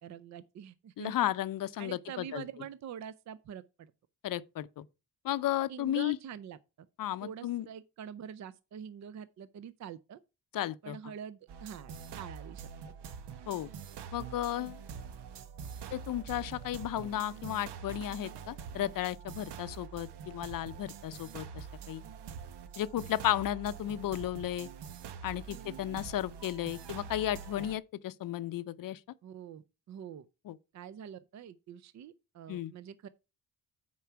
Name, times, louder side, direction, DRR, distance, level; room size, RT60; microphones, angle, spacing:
voice 1, 0.0-1.3 1.8-3.9 5.7-6.6 7.2-10.2 10.8-12.7 25.5-25.7 29.2-30.3 30.7-33.1, right 8 dB, 45° right, 0.4 m, -45 dB
voice 2, 1.0-2.5 4.2-4.8 5.2-6.2 7.0-7.7 10.5-11.0 13.5-13.7 14.1-14.8 15.9-22.0 22.8-24.7 25.2-29.0 30.5-30.6 32.5-32.7, left 12 dB, 55° left, 0.6 m, -34 dB
sound 1, 11.5-27.8, right 7 dB, 85° right, 1.0 m, -45 dB
9.4 x 4.5 x 5.7 m
wide cardioid pair, 180°, 40 cm